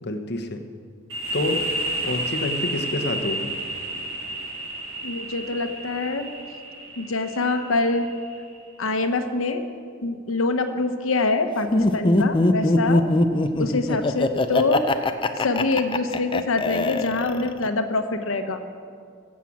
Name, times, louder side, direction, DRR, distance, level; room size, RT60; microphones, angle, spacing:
voice 1, 0.0-0.6 1.3-1.6 2.0-3.5, left 2 dB, 55° left, 6 dB, 1.0 m, -28 dB
sound 1, 1.1-8.6, right 1 dB, 80° right, 2.4 m, -31 dB
voice 2, 5.0-6.3 7.0-8.1 8.8-9.6 10.0-13.0 13.6-14.9 15.4-18.6, left 3 dB, 85° left, 8 dB, 1.0 m, -25 dB
Laughter, 11.7-17.7, left 2 dB, 25° left, 0.5 m, -21 dB
15.0 x 7.5 x 7.2 m, 2.1 s
head